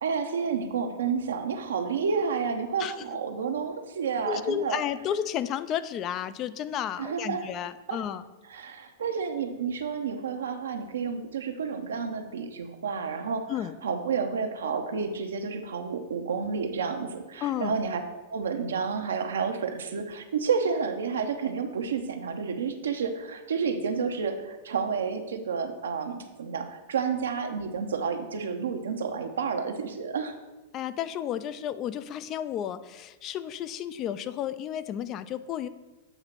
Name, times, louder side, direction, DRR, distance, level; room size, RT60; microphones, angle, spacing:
voice 1, 0.0-4.8 7.0-7.5 7.9-8.0 8.5-13.4 13.8-18.0 18.3-30.3, right 5 dB, 85° right, 5 dB, 0.7 m, -30 dB
voice 2, 4.3-8.2 13.5-13.8 17.4-17.7 30.7-35.7, left 10 dB, 35° left, 15 dB, 0.3 m, -32 dB
7.9 x 2.9 x 5.7 m, 1.1 s
hypercardioid pair, 120°, 0 cm